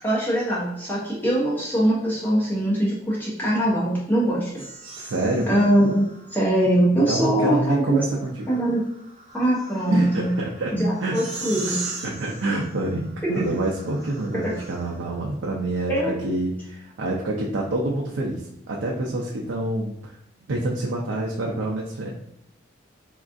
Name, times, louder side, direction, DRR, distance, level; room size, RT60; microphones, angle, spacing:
voice 1, 0.0-4.5 5.5-6.0 6.3-8.0 8.5-8.8 9.3-10.3 10.7-11.8 14.4-14.5 15.9-16.3, right 1 dB, 10° left, -7 dB, 0.7 m, -22 dB
sound 1, 4.6-6.5 8.0-15.2, right 3 dB, 35° right, 0.7 m, -39 dB
voice 2, 5.0-5.5 7.1-8.5 9.9-10.7 11.0-11.2 12.0-20.1 20.5-22.1, right 2 dB, 85° right, -2 dB, 0.4 m, -27 dB
3.5 x 2.3 x 2.5 m, 0.76 s
head